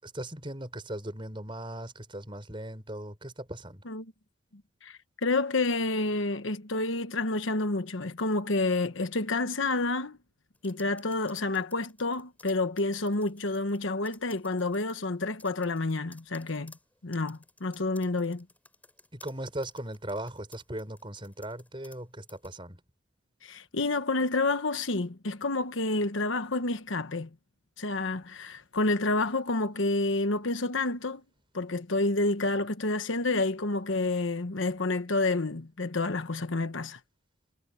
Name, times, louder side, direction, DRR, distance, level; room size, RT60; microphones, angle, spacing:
voice 1, 0.0-3.8 19.1-22.8, right 1 dB, 25° right, 6.5 m, -38 dB
voice 2, 4.8-10.2 10.6-16.7 17.0-18.4 23.4-27.3 27.8-31.2 31.5-37.0, left 2 dB, 70° left, 1.2 m, -29 dB
sound 1, 10.5-13.8 14.0-15.0 15.4-22.0 22.3-22.5, left 2 dB, 10° left, 6.9 m, -56 dB
head